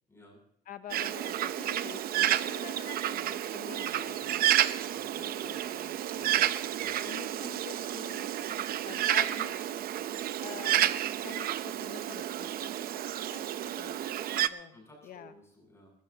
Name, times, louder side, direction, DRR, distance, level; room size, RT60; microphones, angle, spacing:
voice 1, 0.1-0.4 4.9-5.6 6.1-6.4 6.7-7.0 14.7-15.9, left 1 dB, 15° left, -1 dB, 7.8 m, -55 dB
voice 2, 0.7-4.6 5.1-6.5 7.0-8.3 8.9-9.9 10.4-12.7 13.3-15.3, left 9 dB, 55° left, 10 dB, 1.0 m, -47 dB
Bird, 0.9-14.5, right 12 dB, 60° right, 0.7 m, -31 dB
28.0 x 14.0 x 2.9 m, 0.68 s
cardioid pair, 110°, 17 cm